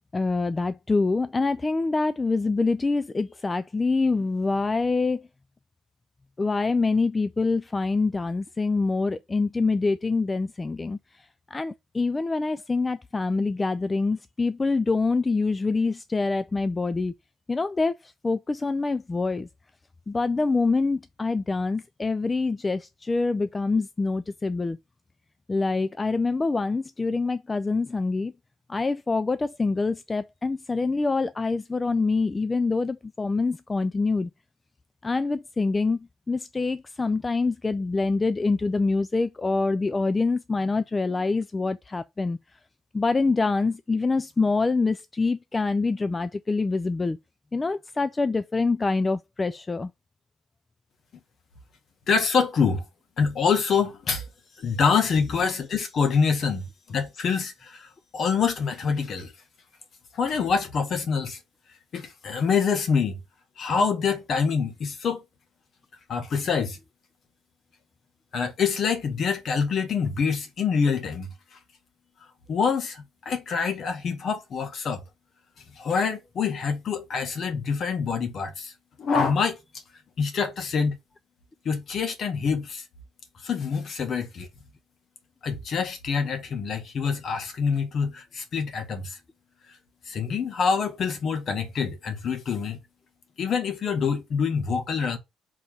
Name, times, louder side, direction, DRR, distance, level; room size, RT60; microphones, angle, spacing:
voice 1, 0.1-5.3 6.4-11.3 11.5-17.1 17.5-19.5 20.1-24.8 25.5-28.3 28.7-34.3 35.0-42.4 42.9-47.2 47.5-49.9, left 3 dB, 20° left, 0.4 m, -25 dB
voice 2, 52.1-52.8 53.2-54.3 54.6-59.3 60.1-61.4 61.9-63.2 63.6-65.2 66.1-66.8 68.3-71.6 72.5-75.0 75.8-78.7 79.0-79.6 80.2-80.9 81.7-82.8 83.4-84.5 85.4-89.2 90.1-92.8 93.4-95.2, left 5 dB, 50° left, 1.9 m, -26 dB
5.2 x 3.7 x 5.7 m
cardioid pair, 115°, 0 cm